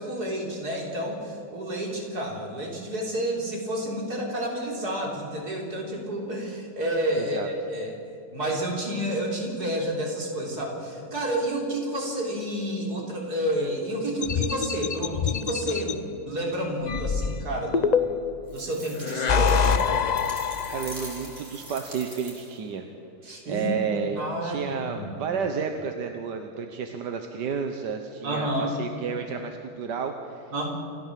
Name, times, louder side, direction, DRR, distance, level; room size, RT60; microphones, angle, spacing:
voice 1, 0.0-7.9 8.3-18.1 18.5-19.8 23.2-25.2 28.2-28.8 30.5-30.7, right 1 dB, 65° right, 0 dB, 4.2 m, -30 dB
voice 2, 7.2-7.5 20.7-22.8 23.2-30.5, right 6 dB, 90° right, 5 dB, 1.7 m, -31 dB
sound 1, 14.2-15.9 16.9-18.4 19.0-21.2, left 6 dB, 90° left, 0.3 m, -25 dB
sound 2, 18.5-22.7, right 1 dB, 45° right, 4.0 m, -43 dB
28.0 x 13.5 x 7.6 m, 2.7 s
omnidirectional pair, 1.8 m